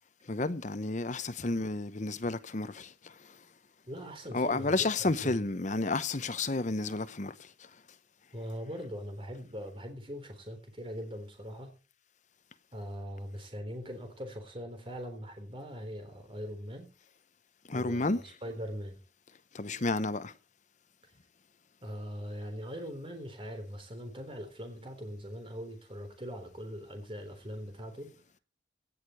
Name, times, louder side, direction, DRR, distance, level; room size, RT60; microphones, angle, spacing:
voice 1, 0.3-3.4 4.3-7.5 17.7-18.2 19.5-20.3, left 2 dB, 40° left, 0.9 m, -31 dB
voice 2, 3.9-5.4 8.3-11.8 12.7-16.9 17.7-19.0 21.8-28.1, equal, 30° right, 3.7 m, -41 dB
17.0 x 6.7 x 7.7 m
head